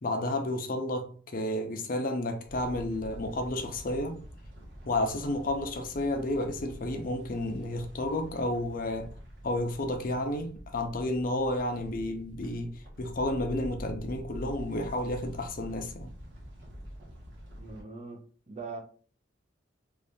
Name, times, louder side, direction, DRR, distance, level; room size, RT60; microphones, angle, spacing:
voice 1, 0.0-4.2 4.9-9.1 9.4-16.1, left 1 dB, 45° left, 0.5 m, -31 dB
sound 1, 2.5-17.8, equal, 65° right, 1.2 m, -46 dB
voice 2, 17.6-18.8, right 3 dB, 35° right, 0.6 m, -42 dB
3.1 x 2.6 x 3.4 m
head